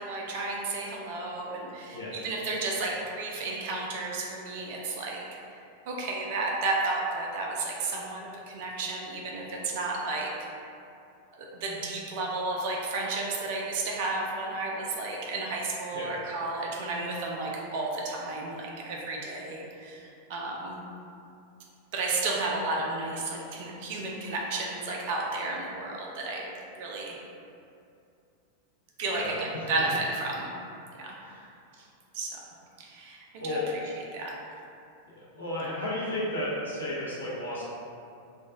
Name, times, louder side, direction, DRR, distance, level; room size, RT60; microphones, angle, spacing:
voice 1, 0.0-5.2 5.9-10.3 11.3-20.8 21.9-27.2 29.0-30.5 31.0-31.1 32.1-32.4 32.8-33.6 33.9-34.4, right 3 dB, 50° right, -2 dB, 0.5 m, -32 dB
voice 2, 29.1-29.7 31.2-31.5 33.4-33.7 35.1-37.6, left 1 dB, 80° left, -8 dB, 0.8 m, -33 dB
3.5 x 2.3 x 2.5 m, 2.5 s
figure-of-eight pair, 90°, 0 cm